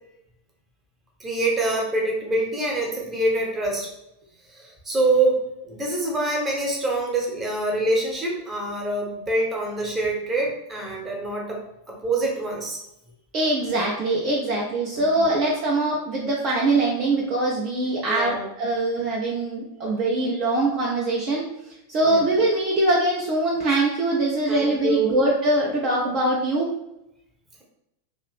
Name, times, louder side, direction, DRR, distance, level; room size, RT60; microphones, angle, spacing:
voice 1, 1.2-3.9 4.5-11.6 11.9-12.8 14.9-15.2 18.1-18.5 22.0-22.2 24.5-25.1, right 2 dB, 15° right, -1 dB, 1.0 m, -25 dB
voice 2, 13.3-21.4 21.9-26.7, right 2 dB, 35° right, -3 dB, 0.6 m, -23 dB
2.8 x 2.6 x 3.4 m, 0.87 s
figure-of-eight pair, 90°, 0 cm